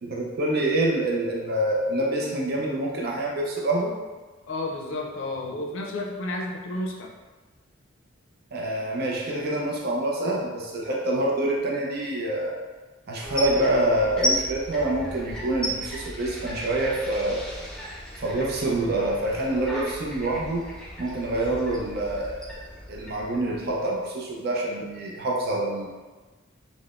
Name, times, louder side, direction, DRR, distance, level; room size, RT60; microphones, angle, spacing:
voice 1, 0.0-4.0 8.5-12.6 13.1-17.4 18.2-20.7 21.0-22.6 22.9-25.9, right 1 dB, 50° right, -2 dB, 0.5 m, -26 dB
voice 2, 4.5-7.1, left 2 dB, 70° left, 0 dB, 0.5 m, -31 dB
sound 1, 13.2-24.0, equal, 5° left, 0.4 m, -35 dB
3.6 x 2.0 x 2.4 m, 1.3 s
head